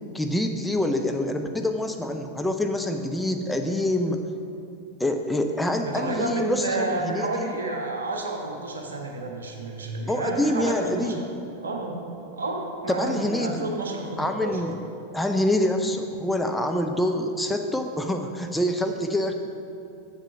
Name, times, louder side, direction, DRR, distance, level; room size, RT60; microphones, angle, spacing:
voice 1, 0.1-4.2 5.0-7.6 10.1-11.2 12.9-13.7 14.2-14.7 15.1-19.3, left 1 dB, 5° left, 4 dB, 0.5 m, -26 dB
voice 2, 5.8-11.1 11.6-12.0 12.3-14.6, right 2 dB, 70° right, 1 dB, 1.2 m, -30 dB
7.4 x 7.3 x 5.1 m, 2.7 s
figure-of-eight pair, 90°, 0 cm